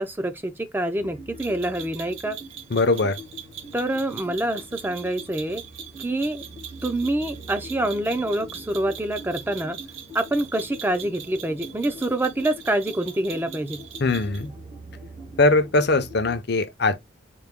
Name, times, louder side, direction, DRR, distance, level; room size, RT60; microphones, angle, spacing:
voice 1, 0.0-2.4 3.7-5.6 6.0-6.4 6.8-9.8 10.1-13.8, right 1 dB, 10° right, 0.4 m, -26 dB
sound 1, 1.0-16.4, equal, 30° right, 0.8 m, -43 dB
sound 2, 1.4-14.5, right 8 dB, 75° right, 0.9 m, -41 dB
voice 2, 2.7-3.2 14.0-14.5 15.4-17.0, left 2 dB, 55° left, 0.6 m, -21 dB
4.6 x 2.2 x 3.6 m
head